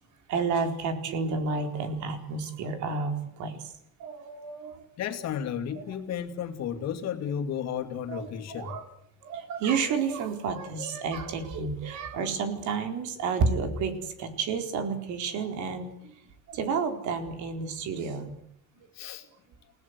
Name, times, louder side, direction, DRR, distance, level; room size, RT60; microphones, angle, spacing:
voice 1, 0.3-3.6 4.0-4.8 8.1-8.8 9.2-16.1 16.5-18.3, right 5 dB, 65° right, 6 dB, 4.3 m, -30 dB
voice 2, 5.0-8.8 18.9-19.3, left 8 dB, 55° left, 5 dB, 2.8 m, -33 dB
29.5 x 18.0 x 8.3 m, 0.71 s
cardioid pair, 160°, 31 cm